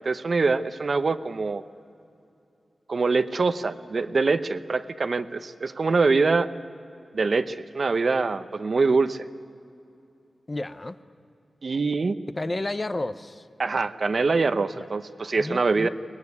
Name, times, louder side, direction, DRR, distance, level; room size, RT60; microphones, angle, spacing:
voice 1, 0.0-1.6 2.9-6.5 7.1-9.3 11.6-12.2 13.6-15.9, right 4 dB, 50° right, 11 dB, 0.8 m, -24 dB
voice 2, 10.5-11.0 12.4-13.4 14.8-14.9 15.4-15.9, left 2 dB, 25° left, 11 dB, 0.8 m, -31 dB
23.5 x 20.0 x 9.6 m, 2.7 s
wide cardioid pair, 130°, 0 cm